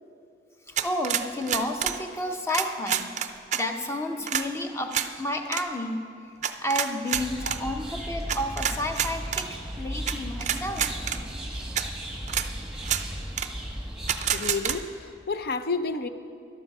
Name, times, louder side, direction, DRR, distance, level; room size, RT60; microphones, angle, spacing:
voice 1, 0.7-6.1 6.6-10.9, left 1 dB, 15° left, 5 dB, 0.7 m, -31 dB
sound 1, 0.8-2.0 2.5-3.6 4.3-4.5 4.9-5.1 5.5-5.6 6.4-7.6 8.3-9.5 10.1-10.2 10.4-11.2 11.8-11.9 12.3-12.5 12.8-13.0 13.4-13.5 14.1-14.8, right 9 dB, 40° right, 0.4 m, -27 dB
sound 2, 7.1-14.4, equal, 5° right, 1.2 m, -36 dB
voice 2, 14.3-16.1, left 4 dB, 55° left, 11 dB, 0.5 m, -30 dB
13.0 x 11.5 x 5.4 m, 2.5 s
head